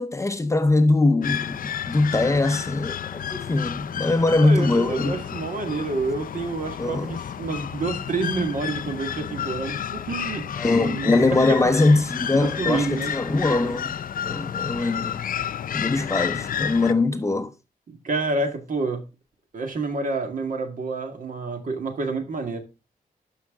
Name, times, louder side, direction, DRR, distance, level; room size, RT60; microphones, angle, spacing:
voice 1, 0.0-5.2 6.8-7.1 10.6-13.9 14.3-15.2 15.7-17.5, left 2 dB, 20° left, 0.7 m, -22 dB
sound 1, 1.2-16.9, left 9 dB, 60° left, 0.4 m, -31 dB
voice 2, 4.4-11.7 12.4-13.1 17.9-19.0 19.5-22.6, right 3 dB, 60° right, 2.0 m, -28 dB
12.0 x 5.7 x 3.7 m
wide cardioid pair, 160°, 16 cm